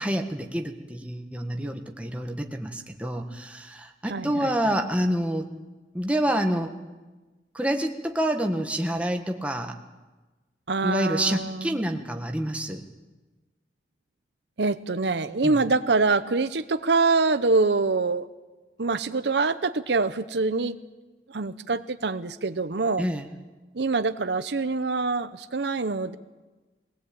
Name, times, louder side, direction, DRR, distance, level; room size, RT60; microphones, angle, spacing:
voice 1, 0.0-5.5 5.9-6.7 7.5-9.8 10.8-12.8 15.4-15.6 23.0-23.3, right 1 dB, 5° right, 3 dB, 1.5 m, -28 dB
voice 2, 4.1-4.5 10.7-11.8 14.6-18.3 18.8-20.8 21.3-23.1 23.7-26.2, right 3 dB, 75° right, 12 dB, 0.8 m, -25 dB
22.5 x 18.0 x 8.7 m, 1.2 s
head